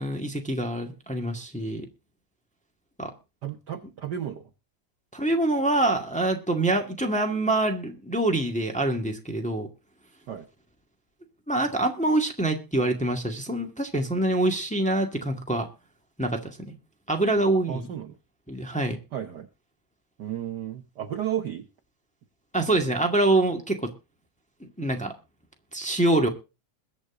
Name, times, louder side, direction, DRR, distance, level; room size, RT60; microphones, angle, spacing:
voice 1, 0.0-1.9 3.0-3.1 5.1-9.7 11.5-15.7 16.2-16.7 17.1-17.9 18.5-19.0 22.5-23.9 24.6-25.1 25.7-26.3, right 2 dB, 5° left, 2 dB, 1.5 m, -25 dB
voice 2, 3.4-4.4 10.3-10.5 17.7-18.2 19.1-19.5 20.2-21.6, right 10 dB, 75° right, 6 dB, 0.9 m, -33 dB
22.0 x 8.1 x 3.8 m, 0.30 s
omnidirectional pair, 3.3 m